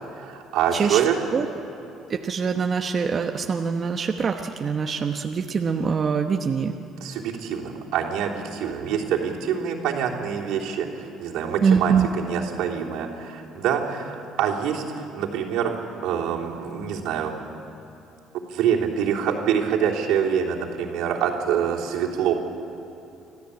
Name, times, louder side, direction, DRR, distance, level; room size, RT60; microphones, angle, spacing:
voice 1, 0.0-1.1 7.0-17.5 18.5-22.3, right 8 dB, 80° right, -2 dB, 3.3 m, -26 dB
voice 2, 2.1-6.7 11.6-12.1, right 6 dB, 40° right, 4 dB, 1.0 m, -24 dB
25.0 x 14.5 x 8.5 m, 2.9 s
cardioid pair, 95°, 0 cm